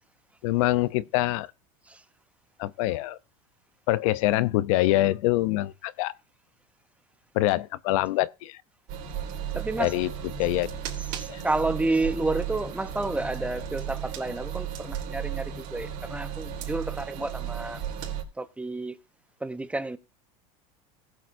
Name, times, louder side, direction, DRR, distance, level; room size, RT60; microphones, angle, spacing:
voice 1, 0.4-1.5 2.6-3.2 3.9-6.1 7.3-8.6 9.8-10.1 10.4-10.7 11.3-11.4, left 17 dB, 75° left, 0.6 m, -25 dB
sound 1, 8.9-18.2, right 9 dB, 60° right, 3.6 m, -35 dB
voice 2, 9.5-10.0 11.0-17.8 18.4-18.9 19.4-20.0, right 2 dB, 5° right, 0.7 m, -30 dB
19.0 x 8.0 x 2.6 m
supercardioid pair, 135°, 17 cm